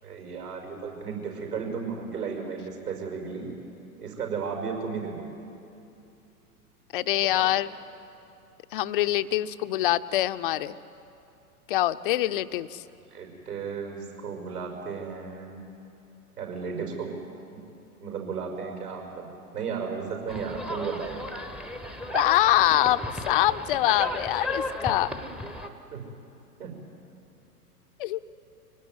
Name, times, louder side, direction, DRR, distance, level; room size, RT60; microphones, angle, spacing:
voice 1, 0.0-3.5 4.0-5.2 7.2-7.5 13.1-15.6 16.4-17.1 18.0-19.3 19.5-21.2 25.9-26.2 26.6-26.7, right 5 dB, 70° right, 1 dB, 5.8 m, -34 dB
voice 2, 6.9-7.7 8.7-10.8 11.7-12.8 22.1-25.2 28.0-28.2, left 14 dB, 35° left, 13 dB, 0.6 m, -24 dB
sound 1, 20.3-25.7, left 1 dB, ahead, 0.8 m, -34 dB
24.5 x 18.0 x 9.7 m, 2.7 s
figure-of-eight pair, 105°, 47 cm